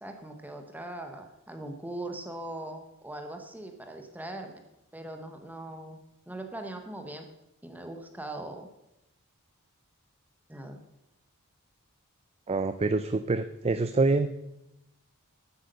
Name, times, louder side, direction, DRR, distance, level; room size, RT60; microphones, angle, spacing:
voice 1, 0.0-4.6 4.9-6.0 6.3-7.3 7.6-8.7 10.5-10.8, right 1 dB, 10° right, 5 dB, 1.0 m, -40 dB
voice 2, 12.5-14.3, right 3 dB, 25° right, 11 dB, 0.4 m, -26 dB
12.5 x 8.2 x 6.7 m, 0.88 s
head